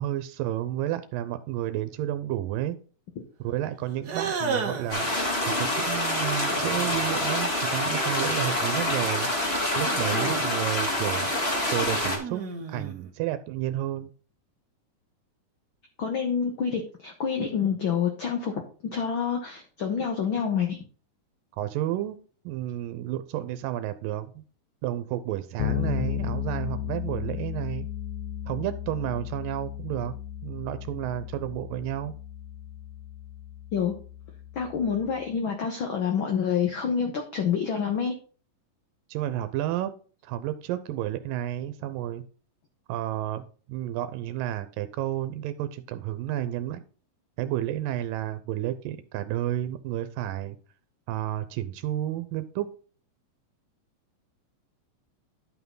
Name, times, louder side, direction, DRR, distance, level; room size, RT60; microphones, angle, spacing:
voice 1, 0.0-2.8 3.4-5.1 5.4-9.3 9.8-11.3 11.7-12.4 12.7-14.1 21.6-22.2 22.4-24.4 24.8-27.9 28.5-30.1 30.4-32.1 39.1-39.9 40.2-42.2 42.9-46.8 47.4-50.6 51.1-52.7, right 13 dB, 90° right, 11 dB, 2.4 m, -31 dB
sound 1, 4.0-5.0 6.4-7.1 8.3-9.1 9.6-10.6 11.3-13.1, right 5 dB, 55° right, 1.1 m, -34 dB
sound 2, 4.9-12.2, left 1 dB, 20° left, 2.3 m, -26 dB
voice 2, 16.0-18.5 18.8-20.8 33.7-33.9 34.5-38.1, left 7 dB, 55° left, 4 dB, 1.5 m, -27 dB
Bass guitar, 25.6-35.2, left 11 dB, 80° left, 1.7 m, -35 dB
11.5 x 5.9 x 3.9 m, 0.39 s
omnidirectional pair, 3.9 m